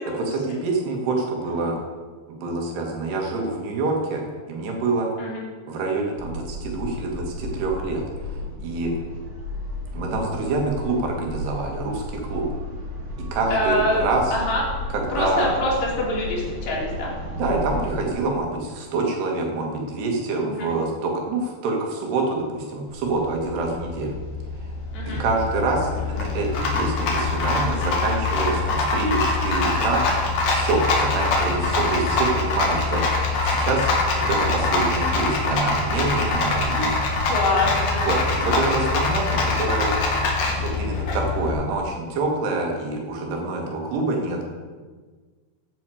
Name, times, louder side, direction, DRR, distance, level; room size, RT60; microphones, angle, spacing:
voice 1, 0.3-1.8 2.4-4.2 4.5-5.1 5.7-8.0 8.6-8.9 9.9-12.5 13.3-14.2 14.9-15.5 17.3-24.2 25.2-33.2 33.4-36.9 38.0-40.0 40.5-44.4, right 3 dB, 75° right, 0 dB, 4.0 m, -26 dB
sound 1, 6.2-18.1, left 1 dB, 35° right, 3.0 m, -33 dB
voice 2, 13.5-14.1 14.3-14.6 15.1-17.1 20.4-20.7 24.9-25.2 28.7-28.8 37.3-38.1, left 2 dB, 75° left, -4 dB, 5.0 m, -25 dB
Rattle, 22.9-41.5, left 3 dB, 55° left, 2.9 m, -24 dB
15.5 x 9.5 x 4.9 m, 1.5 s
omnidirectional pair, 4.8 m